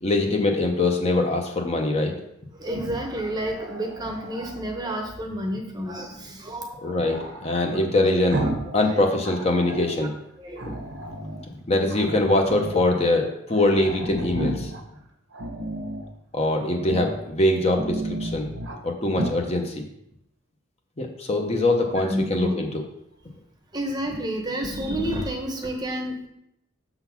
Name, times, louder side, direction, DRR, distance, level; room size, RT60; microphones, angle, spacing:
voice 1, 0.0-2.2 6.8-8.4 8.7-10.1 11.7-14.7 16.3-18.5 18.8-19.8 21.0-22.7, left 2 dB, 30° left, 3 dB, 0.7 m, -23 dB
voice 2, 2.5-7.0 7.5-8.2 8.8-9.0 10.4-10.7 21.8-22.6 23.7-26.3, equal, 20° right, 3 dB, 0.8 m, -30 dB
Growling, 2.6-4.6 7.0-8.8 9.1-10.0 10.6-11.5 11.9-12.9 13.2-13.3 13.5-14.8 15.3-16.1 16.8-17.2 17.6-18.8 19.1-19.4, right 1 dB, 60° right, 0.9 m, -33 dB
6.9 x 3.9 x 5.8 m, 0.77 s
head